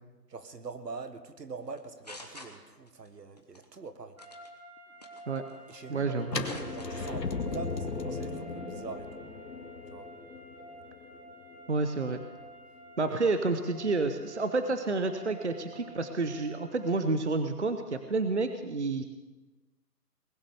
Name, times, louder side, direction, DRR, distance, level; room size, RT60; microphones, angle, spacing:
voice 1, 0.3-4.2 5.7-9.1 9.9-10.1 13.1-13.2, right 4 dB, 75° right, 10 dB, 1.7 m, -43 dB
sound 1, 1.7-3.1 3.4-3.7 4.2-4.5 5.0-5.9 6.2-6.9 7.3-7.6, left 2 dB, 25° left, 1.0 m, -48 dB
sound 2, 4.2-17.0, right 2 dB, 20° right, 2.0 m, -50 dB
voice 2, 5.9-6.5 11.7-12.2 13.0-19.0, right 3 dB, 45° right, 8 dB, 0.9 m, -29 dB
sound 3, 6.3-12.1, left 4 dB, 80° left, 2.2 m, -37 dB
20.0 x 9.8 x 6.9 m, 1.2 s
hypercardioid pair, 175°, 49 cm